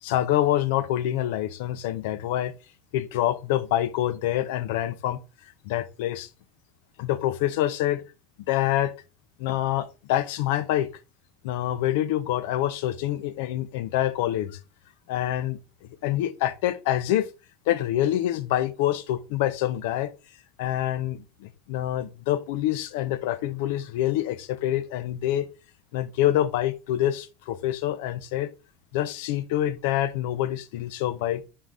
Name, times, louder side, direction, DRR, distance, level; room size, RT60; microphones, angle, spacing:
voice 1, 0.0-2.5 2.9-5.2 5.6-6.3 7.0-8.0 8.5-8.9 9.4-10.9 11.4-14.6 15.1-15.6 16.0-17.3 17.7-20.1 20.6-25.5 25.9-28.5 28.9-31.4, left 13 dB, 75° left, 0.7 m, -26 dB
6.1 x 3.9 x 3.9 m
cardioid pair, 165°, 0 cm